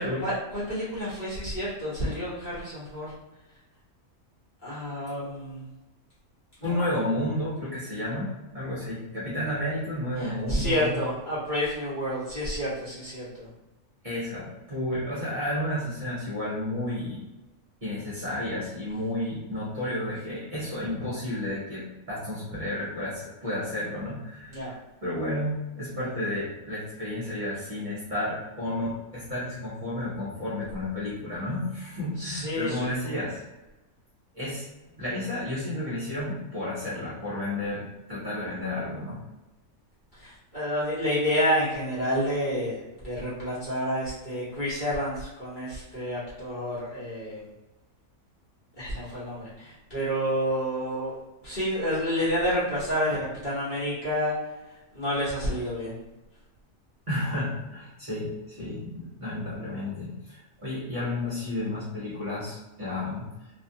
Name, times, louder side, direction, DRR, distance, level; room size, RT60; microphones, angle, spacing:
voice 1, 0.0-3.1 4.6-5.7 6.6-6.9 10.2-13.5 24.5-24.7 32.2-32.8 40.2-47.5 48.8-51.2 51.4-54.3 54.9-55.9, equal, 40° left, -10 dB, 1.1 m, -29 dB
voice 2, 6.6-10.9 14.0-17.2 17.8-33.4 34.3-34.6 35.0-37.8 38.1-39.2 57.1-63.3, left 1 dB, 40° right, -8 dB, 0.9 m, -32 dB
2.6 x 2.3 x 2.7 m, 1.0 s
omnidirectional pair, 1.4 m